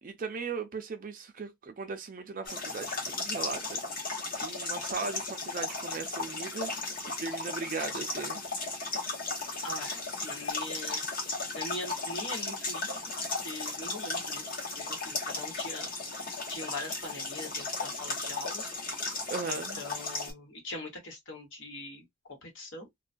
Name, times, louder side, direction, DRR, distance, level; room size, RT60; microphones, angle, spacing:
voice 1, 0.0-4.1 4.4-6.7 7.2-8.5 19.3-19.8, right 4 dB, 40° right, 0.4 m, -38 dB
sound 1, 2.5-20.3, left 3 dB, 45° left, 0.9 m, -35 dB
voice 2, 9.6-11.0 11.5-14.5 14.8-15.9 16.5-18.6 19.5-22.0 22.4-22.9, left 2 dB, 65° left, 1.1 m, -42 dB
2.3 x 2.2 x 2.5 m
head